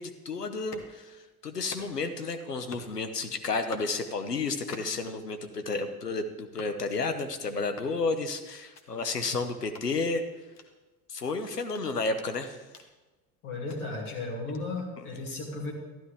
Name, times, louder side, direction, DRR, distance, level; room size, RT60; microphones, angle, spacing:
voice 1, 0.0-10.2 11.1-12.6, left 3 dB, 90° left, 8 dB, 0.8 m, -32 dB
sound 1, 0.6-0.9 1.5-2.1 2.5-3.0 3.5-3.9 4.5-5.1 5.5-5.9 6.5-6.8 7.5-8.0 8.6-8.9 9.6-9.9 10.5-10.7 11.6-12.9 13.5-13.8 14.5-14.6, left 5 dB, 35° left, 1.3 m, -49 dB
voice 2, 13.4-15.7, left 3 dB, 70° left, -2 dB, 2.8 m, -35 dB
13.0 x 11.5 x 3.4 m, 1.2 s
figure-of-eight pair, 65°, 46 cm